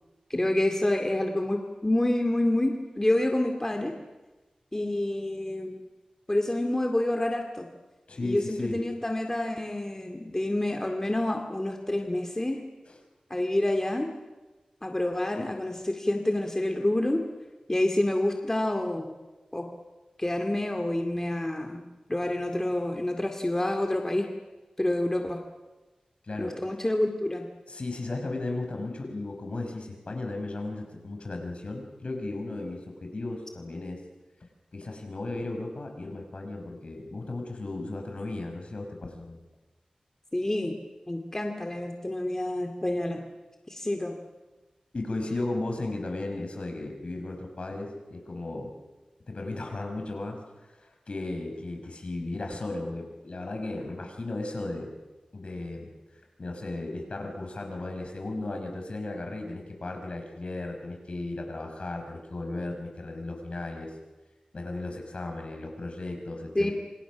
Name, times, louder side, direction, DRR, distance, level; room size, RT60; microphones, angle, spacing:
voice 1, 0.3-3.9 4.7-5.7 6.3-7.7 8.2-12.7 13.3-14.1 14.8-17.2 17.7-19.1 19.5-19.7 20.2-21.8 22.1-24.3 24.8-25.4 26.4-27.5 40.3-40.8 41.1-43.2 43.7-44.2 66.5-66.7, left 1 dB, 20° left, 3 dB, 2.3 m, -28 dB
voice 2, 8.1-8.9 12.9-13.0 26.2-26.6 27.7-34.0 34.7-39.4 44.9-48.8 49.3-50.4 50.8-54.9 55.3-55.9 56.4-63.9 64.5-66.7, left 2 dB, 60° left, 3 dB, 5.5 m, -35 dB
27.0 x 26.5 x 6.2 m, 1.2 s
wide cardioid pair, 60°, 2 cm